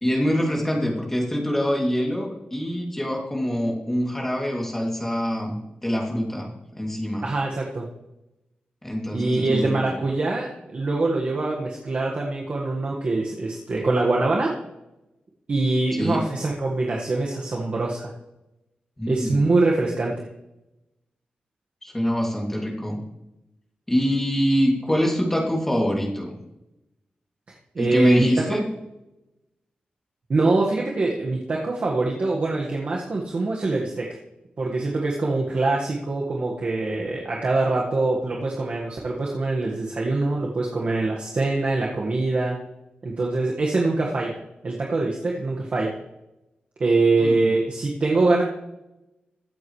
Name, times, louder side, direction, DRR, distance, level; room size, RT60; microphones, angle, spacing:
voice 1, 0.0-7.3 8.8-10.0 16.0-16.2 19.0-19.4 21.8-23.0 23.9-26.3 27.8-28.6 47.2-47.4, equal, 10° left, -1 dB, 2.7 m, -25 dB
voice 2, 7.2-7.8 9.1-14.5 15.5-18.1 19.1-20.1 27.7-28.3 30.3-34.1 34.6-42.6 43.0-45.9 46.8-48.4, right 3 dB, 45° right, -2 dB, 1.7 m, -24 dB
22.0 x 8.5 x 3.3 m, 0.94 s
wide cardioid pair, 135°, 3 cm